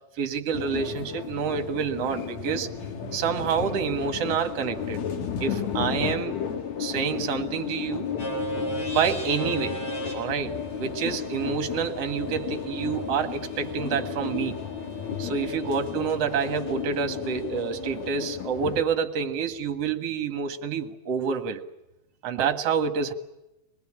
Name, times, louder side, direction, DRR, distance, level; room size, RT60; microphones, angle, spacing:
voice 1, 0.2-2.7 3.1-5.0 5.4-6.4 6.8-8.1 8.9-9.8 10.1-14.6 15.2-21.6 22.2-23.1, right 6 dB, 50° right, 6 dB, 2.2 m, -28 dB
sound 1, 0.5-18.8, left 8 dB, 55° left, 2.6 m, -33 dB
sound 2, 8.2-16.1, right 3 dB, 35° left, 8.6 m, -38 dB
25.5 x 20.0 x 8.7 m, 0.93 s
omnidirectional pair, 4.4 m